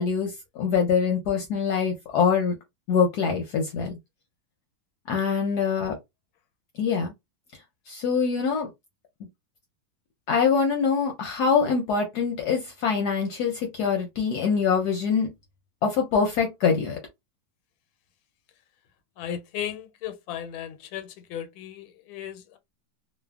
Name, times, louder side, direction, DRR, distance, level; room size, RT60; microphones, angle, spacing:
voice 1, 0.0-2.6 2.9-4.0 5.1-6.0 6.8-7.1 7.9-8.7 10.3-15.3 15.8-17.0, left 6 dB, 70° left, 1.0 m, -24 dB
voice 2, 19.2-22.6, left 10 dB, 90° left, 1.4 m, -36 dB
3.3 x 2.0 x 2.3 m
omnidirectional pair, 2.2 m